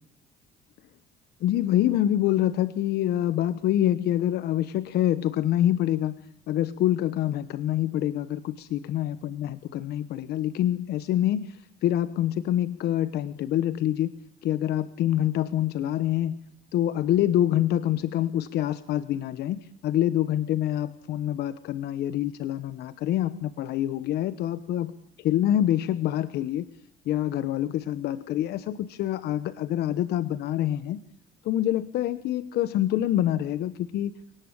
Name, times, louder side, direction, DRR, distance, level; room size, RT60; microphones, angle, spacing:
voice 1, 1.4-6.1 6.5-14.1 14.4-16.4 16.7-24.9 25.2-26.6 27.1-31.0 31.4-34.1, left 12 dB, 75° left, 13 dB, 1.2 m, -26 dB
29.5 x 18.5 x 9.0 m, 0.69 s
cardioid pair, 110°, 17 cm